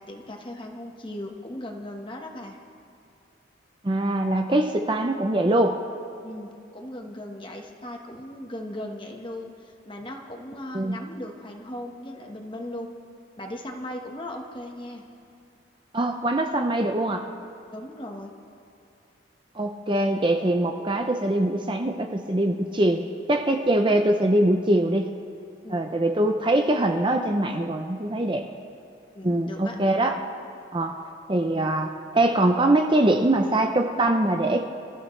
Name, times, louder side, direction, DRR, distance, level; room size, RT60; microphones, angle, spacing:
voice 1, 0.0-2.6 6.2-12.9 13.4-15.0 17.7-18.3 25.6-25.8 29.1-29.8, left 1 dB, 25° left, 2 dB, 1.3 m, -38 dB
voice 2, 3.8-5.8 10.7-11.0 15.9-17.3 19.5-23.0 23.3-25.1 25.7-28.4 29.2-30.2 30.7-31.0 31.3-34.6, right 1 dB, 25° right, 4 dB, 0.6 m, -23 dB
29.0 x 15.0 x 3.3 m, 2.5 s
head